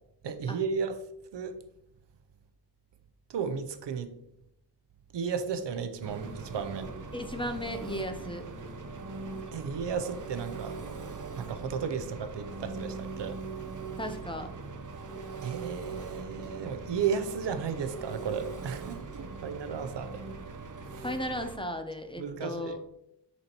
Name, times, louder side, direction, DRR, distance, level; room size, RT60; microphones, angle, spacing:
voice 1, 0.2-1.0 1.3-1.6 3.3-4.2 5.1-6.9 9.5-10.8 11.3-13.4 15.4-19.1 19.4-20.2 20.9-21.1 22.2-22.8, right 6 dB, 85° right, 0.7 m, -34 dB
Engine, 6.0-21.6, right 4 dB, 45° right, 0.8 m, -41 dB
voice 2, 7.1-8.5 14.0-14.5 21.0-22.8, left 1 dB, 15° left, 0.5 m, -35 dB
8.2 x 4.2 x 2.9 m
wide cardioid pair, 130°, 41 cm